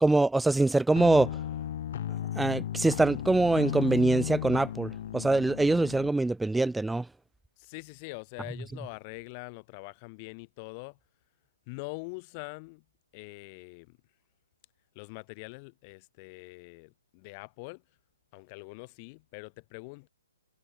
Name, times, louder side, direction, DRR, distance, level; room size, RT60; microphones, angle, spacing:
voice 1, 0.0-1.4 2.4-7.1, right 2 dB, 5° right, 0.9 m, -24 dB
sound 1, 1.0-6.1, left 10 dB, 50° left, 2.0 m, -35 dB
voice 2, 7.6-11.0 11.7-12.8 13.1-14.0 14.9-17.8 18.3-20.1, left 30 dB, 30° left, 6.2 m, -44 dB
hypercardioid pair, 140°, 0 cm